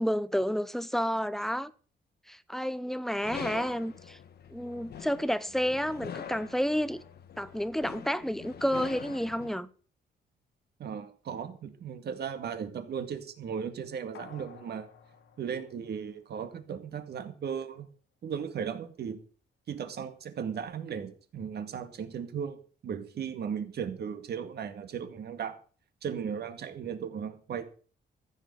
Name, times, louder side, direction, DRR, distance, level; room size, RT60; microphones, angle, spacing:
voice 1, 0.0-1.7 2.3-4.2 4.5-7.0 7.4-9.7, equal, ahead, 0.7 m, -30 dB
sound 1, 3.2-9.6, left 8 dB, 60° left, 1.4 m, -44 dB
voice 2, 10.8-14.9 15.4-17.9 18.2-19.2 19.7-25.6 26.0-27.6, right 7 dB, 60° right, 2.1 m, -36 dB
sound 2, 14.1-16.7 17.1-17.2, left 7 dB, 75° left, 1.9 m, -53 dB
14.5 x 7.2 x 8.0 m
cardioid pair, 140°, 19 cm